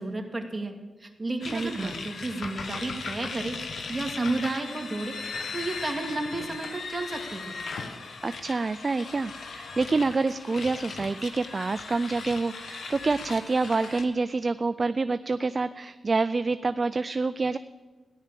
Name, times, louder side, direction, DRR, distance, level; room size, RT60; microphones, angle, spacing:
voice 1, 0.0-5.2 5.5-7.5, right 2 dB, 25° right, 3 dB, 2.2 m, -32 dB
sound 1, 1.4-14.0, left 4 dB, 70° left, 1.3 m, -38 dB
voice 2, 1.5-2.0 8.2-17.6, right 3 dB, 40° right, 13 dB, 0.4 m, -27 dB
14.0 x 11.0 x 7.6 m, 1.3 s
cardioid pair, 70°, 0 cm